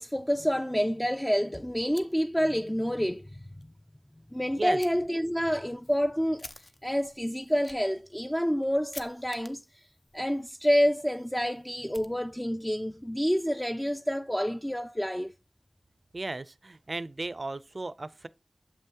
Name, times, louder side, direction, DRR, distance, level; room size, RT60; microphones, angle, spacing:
voice 1, 0.0-3.4 4.3-6.5 6.8-9.8 10.1-15.3, equal, 10° left, 0.3 m, -28 dB
Fire, 1.9-2.7 3.1-3.2 3.6-3.7 4.8-4.9 5.5-12.7, left 2 dB, 60° left, 0.6 m, -52 dB
voice 2, 16.1-18.3, right 2 dB, 55° right, 0.4 m, -35 dB
7.0 x 5.5 x 2.9 m
wide cardioid pair, 60°, 0 cm